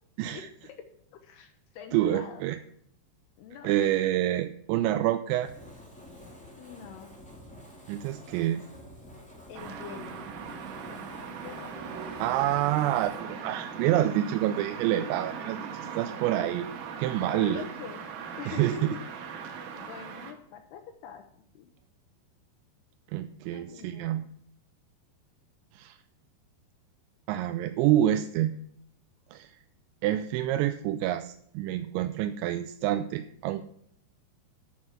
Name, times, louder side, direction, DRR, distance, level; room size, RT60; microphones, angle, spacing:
voice 1, 0.3-2.4 3.4-3.7 6.6-7.1 9.5-10.2 10.8-12.2 17.3-18.1 18.4-19.0 19.7-21.2 21.5-21.7 23.5-24.3, left 8 dB, 80° left, 6 dB, 2.4 m, -45 dB
voice 2, 1.9-2.6 3.6-5.5 7.9-8.6 12.2-16.7 17.0-17.6 18.5-18.9 23.1-24.3 25.7-26.0 27.3-28.6 29.3-29.6 30.0-33.6, right 12 dB, 85° right, 10 dB, 2.7 m, -27 dB
Fire, 5.4-13.2, left 1 dB, 5° left, 0.5 m, -49 dB
sound 1, 9.5-20.3, right 6 dB, 65° right, 2.8 m, -40 dB
12.0 x 6.2 x 5.9 m, 0.69 s
omnidirectional pair, 5.4 m